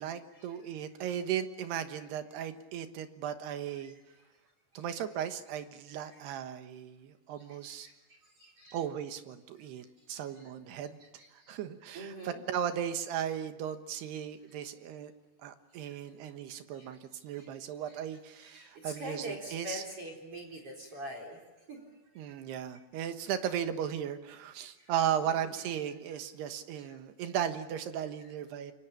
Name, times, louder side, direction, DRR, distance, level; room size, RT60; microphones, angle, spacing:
voice 1, 0.0-4.0 4.8-7.9 8.7-11.0 11.5-15.1 15.4-19.8 22.2-28.7, right 9 dB, 90° right, 8 dB, 3.4 m, -36 dB
voice 2, 5.9-6.3 7.4-7.9 8.4-8.8 10.1-10.5 11.0-11.6 11.9-12.4 15.8-16.0 16.7-16.9 17.4-17.5 17.9-18.0 18.4-21.4 21.7-21.8 22.3-22.4 24.6-24.9 25.2-25.4, equal, 35° right, 2 dB, 4.7 m, -45 dB
28.5 x 24.5 x 7.4 m, 1.1 s
omnidirectional pair, 4.7 m